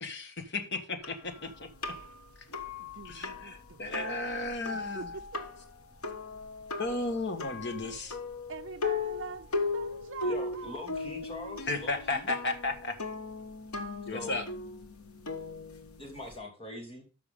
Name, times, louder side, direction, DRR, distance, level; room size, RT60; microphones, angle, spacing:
voice 1, 0.0-1.7 2.5-2.6 3.0-5.1 6.8-8.2 11.7-13.0 14.1-14.4, left 2 dB, 50° left, 1.5 m, -34 dB
sound 1, 1.0-16.4, left 3 dB, 80° left, 1.3 m, -38 dB
voice 2, 2.8-4.0 4.7-5.4 8.5-9.5 9.7-10.8, right 5 dB, 60° right, 0.6 m, -44 dB
voice 3, 10.2-12.3 14.1-14.4 16.0-17.1, left 1 dB, 25° left, 3.0 m, -42 dB
12.5 x 5.8 x 3.7 m
head